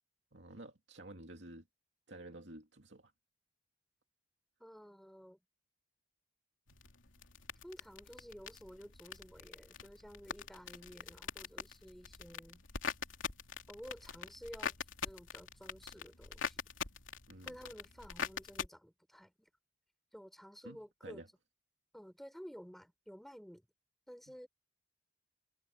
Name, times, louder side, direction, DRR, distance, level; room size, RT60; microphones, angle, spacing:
voice 1, 0.3-1.7 2.1-3.1 17.3-17.6 20.6-21.3, right 1 dB, 65° right, 2.4 m, -51 dB
voice 2, 4.6-5.4 7.6-12.6 13.7-14.7 15.0-16.6 17.4-19.5 20.1-21.2 21.9-23.7 24.1-24.5, equal, ahead, 4.2 m, -52 dB
sound 1, 6.7-18.7, left 6 dB, 85° left, 3.0 m, -44 dB
head